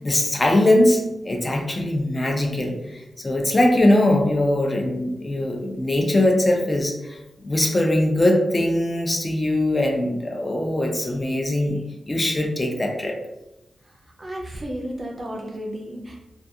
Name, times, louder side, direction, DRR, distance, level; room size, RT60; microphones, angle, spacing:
voice 1, 0.0-11.8 12.1-13.2, left 1 dB, 25° left, 2 dB, 0.4 m, -21 dB
voice 2, 13.8-16.3, equal, 30° right, 0 dB, 0.5 m, -33 dB
2.4 x 2.3 x 2.6 m, 0.93 s
wide cardioid pair, 125°, 0 cm